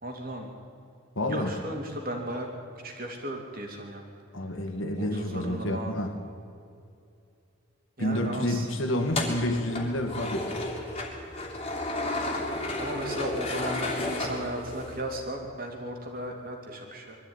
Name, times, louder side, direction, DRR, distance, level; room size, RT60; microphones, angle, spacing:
voice 1, 0.0-0.5 1.3-2.5 2.8-4.0 5.0-5.9 8.0-8.7 12.8-17.2, right 1 dB, 40° right, 2 dB, 3.2 m, -35 dB
voice 2, 1.2-1.5 4.3-6.1 8.0-10.7, left 1 dB, 60° left, 5 dB, 2.2 m, -29 dB
sound 1, 9.0-15.0, left 2 dB, 25° left, 3.0 m, -32 dB
22.0 x 13.5 x 9.9 m, 2.5 s
head